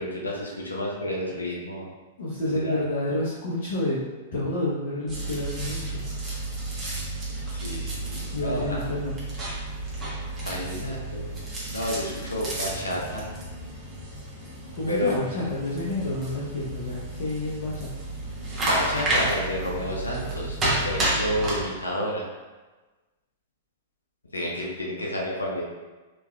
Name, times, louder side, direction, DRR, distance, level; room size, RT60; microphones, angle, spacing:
voice 1, 0.0-1.9 2.5-2.8 7.5-8.8 10.4-11.3 11.7-13.3 14.8-15.2 18.6-22.3 24.3-25.6, left 1 dB, 75° left, -2 dB, 0.6 m, -30 dB
voice 2, 2.2-4.0 4.3-6.0 8.3-9.2 14.7-17.9, left 1 dB, 50° left, -9 dB, 0.9 m, -29 dB
sound 1, 5.1-21.6, right 1 dB, 20° right, 1.1 m, -31 dB
4.6 x 3.0 x 2.3 m, 1.2 s
figure-of-eight pair, 100°, 0 cm